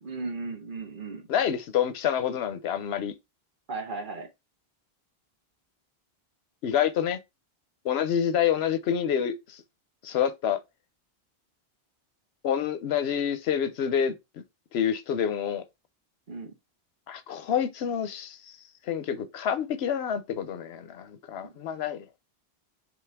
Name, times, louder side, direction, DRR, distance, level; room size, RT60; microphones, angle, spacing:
voice 1, 0.0-1.3 3.7-4.3 16.3-16.5 21.4-21.6, right 3 dB, 55° right, 1.3 m, -36 dB
voice 2, 1.3-3.1 6.6-7.2 7.8-9.6 10.0-10.6 12.4-14.1 14.7-15.6 17.1-18.6 18.9-22.0, left 8 dB, 90° left, 0.9 m, -27 dB
5.1 x 2.9 x 3.5 m
omnidirectional pair, 1.0 m